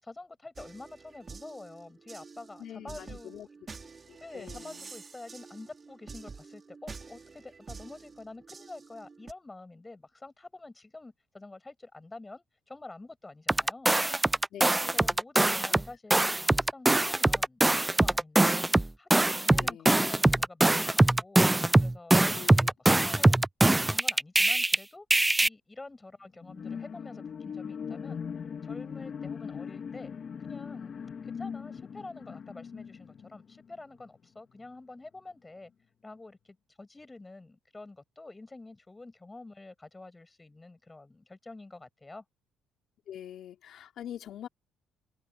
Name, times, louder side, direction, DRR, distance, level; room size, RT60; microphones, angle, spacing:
voice 1, 0.0-3.4 4.2-13.9 14.8-18.6 19.0-21.4 21.8-23.4 23.6-25.1 25.4-28.2 28.6-30.1 30.4-31.0 31.2-35.7 36.0-42.2, left 2 dB, 20° left, 6.9 m, -48 dB
sound 1, 0.6-9.3, right 4 dB, 35° right, 2.6 m, -48 dB
voice 2, 2.6-3.5 4.1-4.9 14.5-15.2 15.7-15.8 19.5-20.2 22.2-22.7 43.1-44.5, left 10 dB, 65° left, 3.6 m, -45 dB
sound 2, 13.5-15.8 16.1-24.8 25.1-25.5, right 2 dB, 10° right, 0.4 m, -23 dB
sound 3, 26.4-34.2 34.6-34.7, left 6 dB, 45° left, 2.2 m, -40 dB
supercardioid pair, 85°, 0 cm